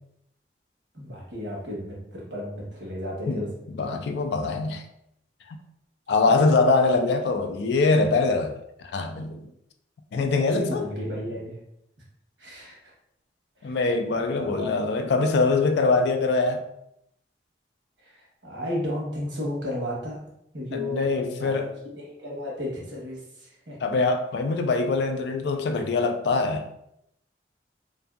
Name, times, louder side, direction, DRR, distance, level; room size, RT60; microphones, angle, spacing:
voice 1, 0.9-3.5 10.1-11.6 12.4-12.9 13.6-13.8 14.1-14.7 18.0-20.2 20.5-21.6 21.9-24.0, left 1 dB, 85° right, -3 dB, 1.1 m, -34 dB
voice 2, 3.7-4.8 6.1-8.6 8.9-9.4 10.1-10.8 13.6-16.6 20.7-21.7 23.8-26.7, left 3 dB, 70° left, 6 dB, 0.3 m, -23 dB
2.6 x 2.6 x 2.3 m, 0.79 s
head